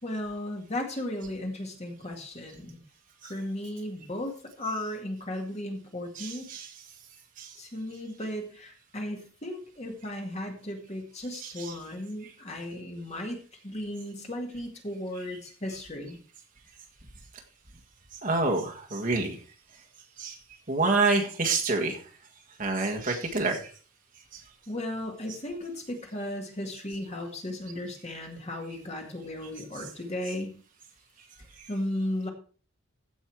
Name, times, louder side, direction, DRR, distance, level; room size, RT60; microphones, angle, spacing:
voice 1, 0.0-2.8 3.2-6.5 7.6-13.4 13.6-16.2 24.7-30.6 31.7-32.3, left 1 dB, 30° left, 2 dB, 2.1 m, -35 dB
voice 2, 6.1-6.8 7.4-7.5 11.3-11.8 12.2-12.3 18.2-19.4 20.2-20.4 20.7-22.0 22.6-23.7 24.3-24.4, right 3 dB, 40° right, 2 dB, 1.6 m, -28 dB
15.0 x 5.5 x 4.7 m, 0.40 s
head